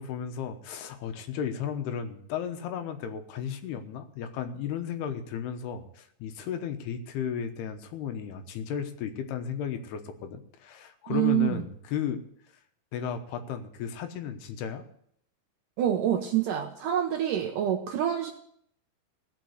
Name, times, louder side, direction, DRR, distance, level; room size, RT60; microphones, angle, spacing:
voice 1, 0.0-12.2 12.9-14.8, left 8 dB, 80° left, 7 dB, 3.0 m, -34 dB
voice 2, 11.1-11.6 15.8-18.3, right 11 dB, 70° right, 3 dB, 2.1 m, -26 dB
17.0 x 6.0 x 8.0 m, 0.69 s
omnidirectional pair, 4.7 m